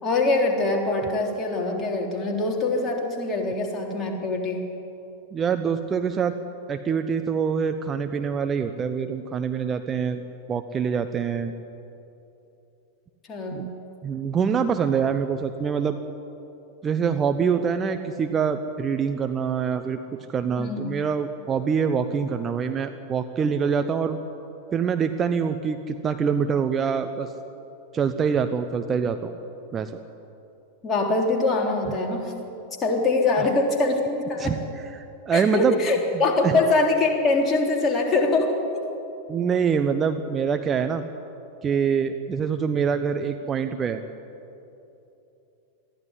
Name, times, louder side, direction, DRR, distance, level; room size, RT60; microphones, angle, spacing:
voice 1, 0.0-4.6 13.3-13.7 20.6-21.0 30.8-32.3 32.8-34.6 35.3-38.9, left 2 dB, 25° left, 0 dB, 3.7 m, -23 dB
voice 2, 5.3-6.3 6.7-10.2 10.5-11.5 13.5-13.7 14.0-16.0 16.8-20.0 20.3-24.2 24.7-27.3 27.9-29.3 29.7-29.9 34.4-35.8 36.4-36.6 39.3-41.0 41.6-44.0, right 6 dB, 25° right, 7 dB, 0.9 m, -25 dB
22.0 x 14.5 x 9.9 m, 2.9 s
figure-of-eight pair, 90°, 0 cm